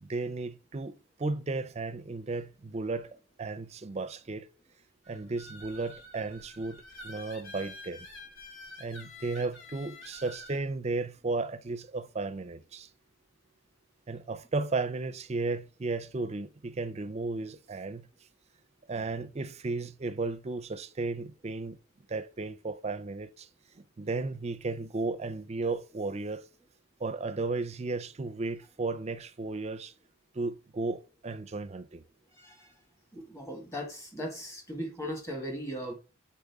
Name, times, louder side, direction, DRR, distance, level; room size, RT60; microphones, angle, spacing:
voice 1, 0.0-4.5 5.1-8.1 8.8-12.9 14.1-18.1 18.9-21.8 22.1-23.5 23.8-26.4 27.0-29.9 30.3-32.0, right 3 dB, 35° right, 0.5 m, -34 dB
sound 1, 5.0-10.6, left 2 dB, 65° left, 2.3 m, -48 dB
voice 2, 33.1-35.9, equal, 15° left, 1.7 m, -38 dB
6.5 x 4.3 x 3.5 m
head